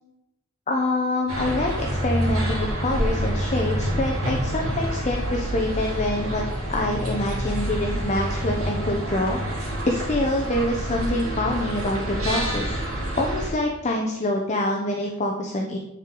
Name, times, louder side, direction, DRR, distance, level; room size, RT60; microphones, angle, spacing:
voice 1, 0.7-6.4 6.7-12.8 13.2-15.8, left 1 dB, 35° left, 2 dB, 0.7 m, -26 dB
sound 1, 1.3-13.5, equal, 80° right, 2.5 m, -27 dB
9.9 x 4.6 x 3.8 m, 0.96 s
head